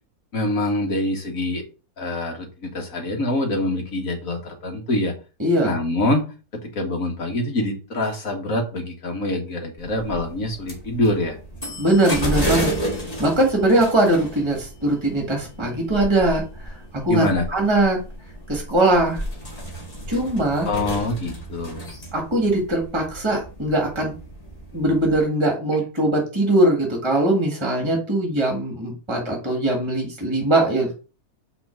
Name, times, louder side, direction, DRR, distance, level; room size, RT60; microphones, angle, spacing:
voice 1, 0.3-1.6 2.0-5.1 5.6-6.3 6.6-11.4 17.1-17.5 20.7-21.8, left 1 dB, 60° left, 3 dB, 2.1 m, -25 dB
voice 2, 5.4-5.7 11.8-12.7 13.2-18.0 18.5-19.2 20.1-20.7 22.1-24.1 24.7-31.0, right 1 dB, 15° right, 1 dB, 1.9 m, -21 dB
sound 1, 9.8-25.2, equal, 25° left, 1.9 m, -32 dB
6.0 x 3.9 x 5.9 m, 0.34 s
omnidirectional pair, 1.7 m